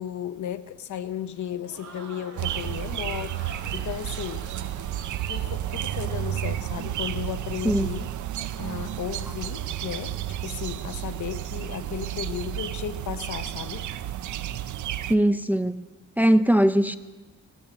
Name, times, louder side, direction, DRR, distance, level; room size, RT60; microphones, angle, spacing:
voice 1, 0.0-4.5 5.3-8.1 8.6-13.9, left 10 dB, 85° left, 0.8 m, -35 dB
Crowd, 1.4-6.2, right 3 dB, 60° right, 2.8 m, -46 dB
sound 1, 2.4-15.1, right 12 dB, 85° right, 0.5 m, -32 dB
voice 2, 15.1-15.9 16.2-17.0, right 1 dB, 5° right, 0.4 m, -20 dB
16.5 x 13.0 x 6.6 m
wide cardioid pair, 135°, 29 cm